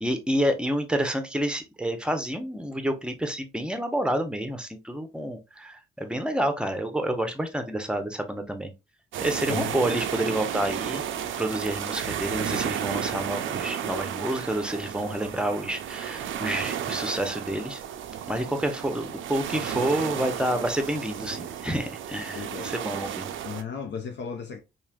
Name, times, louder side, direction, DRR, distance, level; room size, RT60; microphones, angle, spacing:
voice 1, 0.0-8.7 9.2-11.0 11.4-17.8 18.3-23.3, right 1 dB, 5° right, 0.7 m, -29 dB
sound 1, 9.1-23.6, right 9 dB, 70° right, 0.4 m, -33 dB
voice 2, 9.5-9.8 22.3-22.7 23.4-24.6, left 6 dB, 60° left, 0.5 m, -35 dB
3.1 x 2.4 x 2.3 m
supercardioid pair, 55°, 21 cm